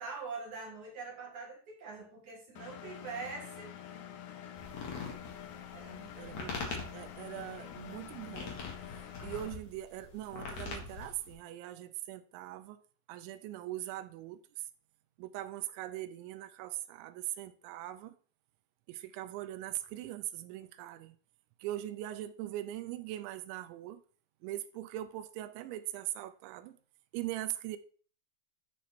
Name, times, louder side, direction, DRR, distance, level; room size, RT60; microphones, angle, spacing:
voice 1, 0.0-3.7 5.7-6.4, right 4 dB, 55° right, 2.5 m, -44 dB
Engine, 2.6-9.5, left 10 dB, 90° left, 1.8 m, -47 dB
sound 1, 4.6-11.3, left 4 dB, 50° left, 2.4 m, -43 dB
voice 2, 6.2-8.7 9.2-12.8 13.1-14.4 15.2-18.2 18.9-21.2 21.6-24.0 24.4-26.8 27.1-27.8, right 14 dB, 85° right, 2.9 m, -41 dB
11.0 x 4.2 x 4.3 m
omnidirectional pair, 5.3 m